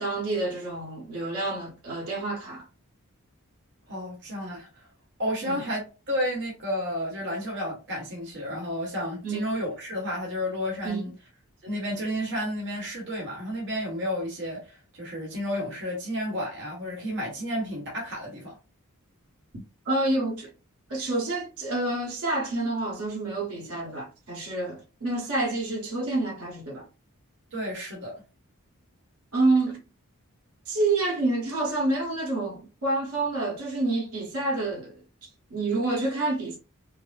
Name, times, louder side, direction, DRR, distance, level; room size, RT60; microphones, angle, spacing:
voice 1, 0.0-2.6 5.4-5.6 9.2-9.5 10.8-11.1 19.8-20.5 20.9-26.9 29.3-29.8 30.6-36.6, right 2 dB, 70° right, 1.5 m, -28 dB
voice 2, 3.9-4.7 5.2-11.1 11.6-18.6 27.5-28.2, equal, 55° right, 1.3 m, -31 dB
4.6 x 2.1 x 2.5 m
head